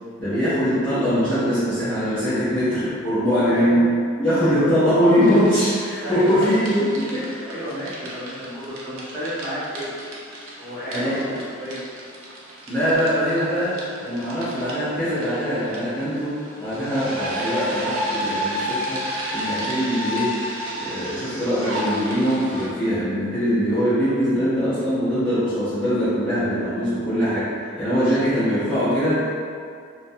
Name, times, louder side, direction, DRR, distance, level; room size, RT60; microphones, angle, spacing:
voice 1, 0.2-3.9 4.2-7.4 8.4-8.6 10.9-11.4 12.7-20.4 20.7-29.2, equal, 5° left, -17 dB, 0.7 m, -22 dB
voice 2, 3.4-3.8 4.4-4.7 6.0-6.6 7.4-9.9 10.6-11.3 11.6-11.8, equal, 15° right, -13 dB, 1.0 m, -31 dB
sound 1, 5.2-22.7, equal, 75° right, 0.5 m, -33 dB
2.3 x 2.1 x 2.6 m, 2.2 s
head